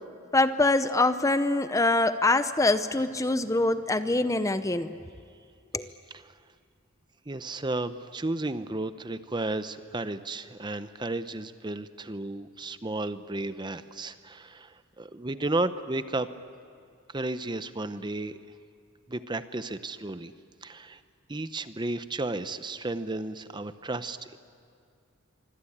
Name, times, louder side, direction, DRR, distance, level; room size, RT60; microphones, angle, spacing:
voice 1, 0.3-4.9 5.7-5.9, left 2 dB, 15° left, 11 dB, 0.7 m, -24 dB
voice 2, 7.3-16.3 17.1-18.4 19.1-20.3 20.6-21.0 21.3-24.4, right 2 dB, 20° right, 12 dB, 0.7 m, -33 dB
25.0 x 24.5 x 8.7 m, 2.4 s
head